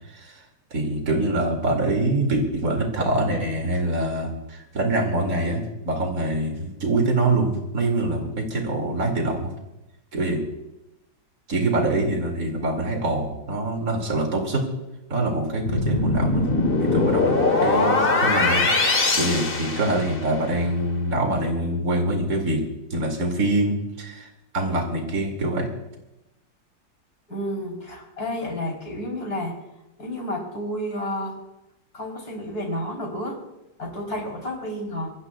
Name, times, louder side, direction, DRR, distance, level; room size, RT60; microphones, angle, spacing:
voice 1, 0.1-0.4 0.7-9.5 10.1-10.4 11.5-14.7 15.1-16.5 16.8-18.7 19.2-22.6 22.9-25.7, right 2 dB, 50° right, 2 dB, 3.0 m, -24 dB
sound 1, 15.7-20.4, left 3 dB, 35° left, 1.5 m, -21 dB
voice 2, 27.3-29.6 30.0-31.4 31.9-33.4 33.8-35.1, left 1 dB, 55° left, 0 dB, 4.5 m, -31 dB
25.5 x 20.5 x 2.4 m, 0.93 s
omnidirectional pair, 2.0 m